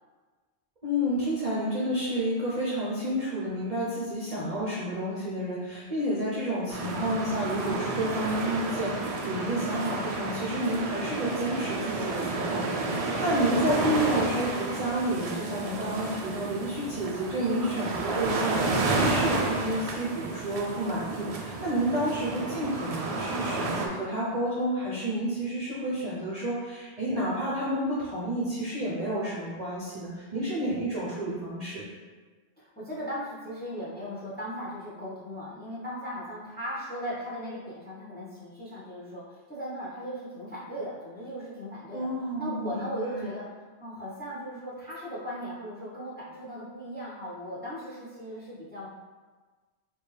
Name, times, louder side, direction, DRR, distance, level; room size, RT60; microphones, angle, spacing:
voice 1, 0.8-31.8 41.9-43.3, right 1 dB, 40° right, -7 dB, 0.7 m, -30 dB
sound 1, 6.7-23.9, right 3 dB, 70° right, 0.3 m, -31 dB
voice 2, 32.6-42.1 42.4-43.4 43.8-48.9, equal, 10° left, -7 dB, 0.9 m, -37 dB
4.2 x 2.9 x 3.3 m, 1.4 s
omnidirectional pair, 1.2 m